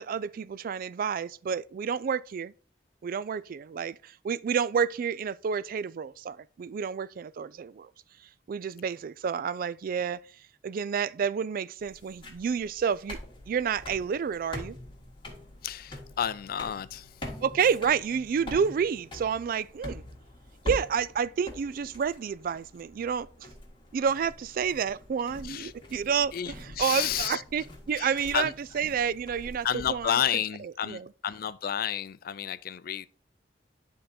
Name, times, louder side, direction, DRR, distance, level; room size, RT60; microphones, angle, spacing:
voice 1, 0.0-2.5 3.0-7.9 8.5-10.2 10.6-13.2 13.5-14.8 17.4-20.0 20.6-23.5 23.9-31.1, right 7 dB, 55° right, 0.3 m, -30 dB
sound 1, 11.8-30.2, left 1 dB, 30° left, 1.7 m, -44 dB
voice 2, 15.6-17.1 25.4-25.7 26.3-27.4 28.0-28.5 29.6-33.1, left 9 dB, 55° left, 0.4 m, -31 dB
10.0 x 3.8 x 4.2 m
head